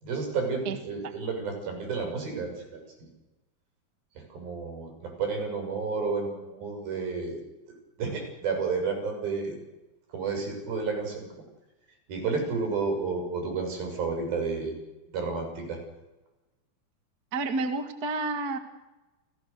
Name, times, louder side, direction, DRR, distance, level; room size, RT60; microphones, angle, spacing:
voice 1, 0.0-3.1 4.3-7.4 8.0-9.6 10.1-11.3 12.1-14.7 15.1-15.8, right 4 dB, 80° right, 3 dB, 8.2 m, -31 dB
voice 2, 17.3-18.6, right 3 dB, 35° right, 7 dB, 1.8 m, -29 dB
29.5 x 17.5 x 6.8 m, 1.1 s
omnidirectional pair, 4.1 m